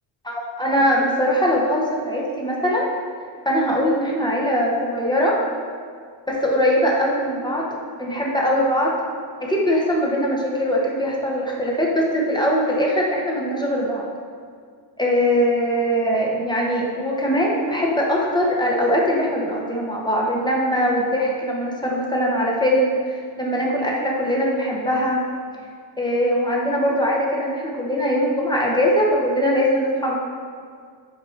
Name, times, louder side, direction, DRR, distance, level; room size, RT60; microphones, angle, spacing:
voice 1, 0.2-2.9 3.4-5.4 6.3-7.7 7.9-8.9 9.4-14.0 15.0-25.2 26.0-30.2, equal, 10° left, -3 dB, 0.8 m, -21 dB
5.1 x 4.3 x 4.4 m, 2.1 s
wide cardioid pair, 150°, 47 cm